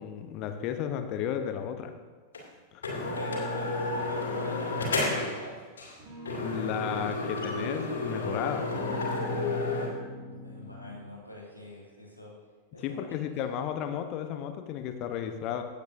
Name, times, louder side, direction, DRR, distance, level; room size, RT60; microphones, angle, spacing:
voice 1, 0.0-1.9 2.7-2.8 6.4-8.7 12.8-15.6, left 9 dB, 40° left, 7 dB, 0.9 m, -33 dB
sound 1, 2.3-2.4 2.8-5.4 5.8-5.9 6.3-9.9, left 2 dB, 70° left, 2.5 m, -31 dB
voice 2, 3.1-5.6 10.2-12.3 12.7-13.1, left 1 dB, 90° right, -4 dB, 2.5 m, -42 dB
sound 2, 4.3-5.4 6.0-8.3 8.7-11.3, left 1 dB, 50° right, 2.4 m, -45 dB
16.5 x 8.4 x 2.7 m, 1.5 s
figure-of-eight pair, 90°, 0 cm